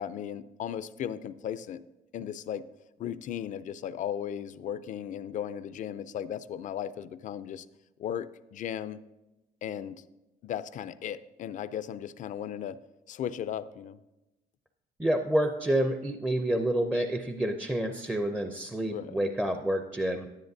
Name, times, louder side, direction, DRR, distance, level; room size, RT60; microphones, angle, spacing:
voice 1, 0.0-1.8 2.1-2.7 3.0-7.7 8.0-9.0 9.6-10.0 10.4-12.8 13.1-14.0 18.8-19.2, left 9 dB, 50° left, 15 dB, 0.4 m, -36 dB
voice 2, 15.0-20.3, right 1 dB, 5° right, 6 dB, 0.5 m, -28 dB
10.5 x 10.0 x 2.7 m, 1.0 s
cardioid pair, 110°, 17 cm